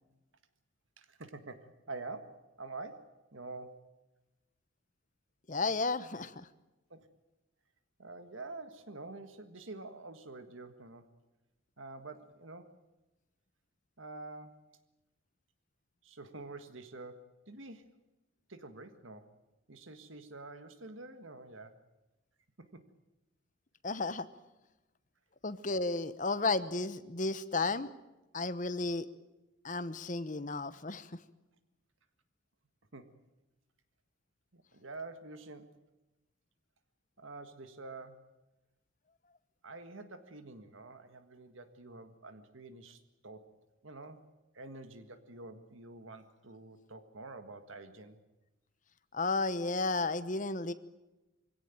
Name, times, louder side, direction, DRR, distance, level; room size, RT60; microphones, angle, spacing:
voice 1, 1.0-3.9 6.9-7.1 8.0-11.1 11.8-12.8 14.0-14.7 16.0-17.9 18.5-19.4 19.7-21.8 22.6-22.9 32.9-33.2 34.5-35.8 37.2-38.3 39.6-43.6 43.8-44.3 44.5-48.2, right 3 dB, 70° right, 10 dB, 1.7 m, -47 dB
voice 2, 5.5-6.5 23.8-24.3 25.4-27.9 28.3-29.1 29.6-31.1 49.1-50.7, left 3 dB, 40° left, 13 dB, 1.0 m, -33 dB
24.0 x 17.0 x 9.1 m, 1.0 s
head